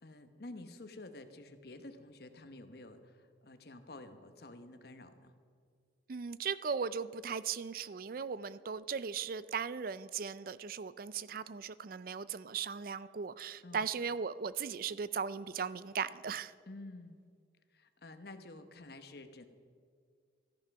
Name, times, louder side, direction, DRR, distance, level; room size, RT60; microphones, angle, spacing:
voice 1, 0.0-5.4 13.6-13.9 16.7-17.2 17.7-19.5, left 2 dB, 60° left, 8 dB, 1.1 m, -50 dB
voice 2, 6.1-16.5, right 6 dB, 50° right, 17 dB, 0.4 m, -38 dB
14.0 x 11.0 x 6.0 m, 2.1 s
head